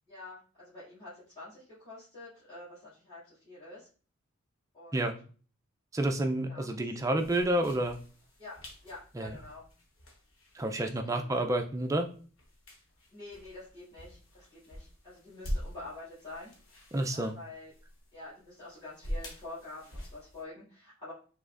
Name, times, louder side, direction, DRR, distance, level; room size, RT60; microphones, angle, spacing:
voice 1, 0.1-3.9 4.7-5.1 6.5-6.7 8.4-8.6 8.8-9.7 10.7-11.6 13.1-16.5 17.1-17.7 18.1-21.1, left 2 dB, 20° left, -14 dB, 2.1 m, -47 dB
voice 2, 5.9-8.0 9.2-9.3 10.5-12.1 16.9-17.3, right 1 dB, 15° right, 5 dB, 0.4 m, -29 dB
sound 1, 7.2-20.4, equal, 60° left, 1.0 m, -44 dB
5.1 x 3.4 x 2.5 m, 0.41 s
head